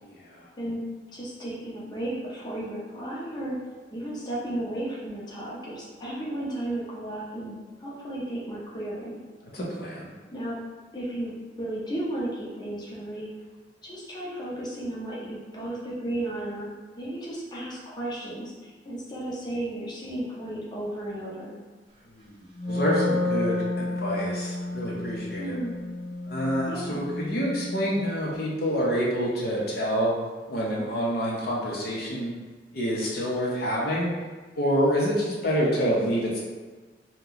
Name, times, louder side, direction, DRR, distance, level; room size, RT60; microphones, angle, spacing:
voice 1, 0.0-0.4 9.5-10.1 22.1-25.6 26.3-30.1 30.5-32.3 32.7-34.1 34.5-36.4, equal, 60° left, -4 dB, 0.7 m, -27 dB
voice 2, 1.1-3.6 3.9-9.2 10.3-10.6 10.9-13.3 13.8-21.6 25.4-25.8 26.7-27.1, right 1 dB, 25° left, -6 dB, 0.7 m, -34 dB
Wind instrument woodwind instrument, 22.5-28.2, left 2 dB, 30° right, 0.8 m, -31 dB
2.8 x 2.2 x 3.8 m, 1.3 s
head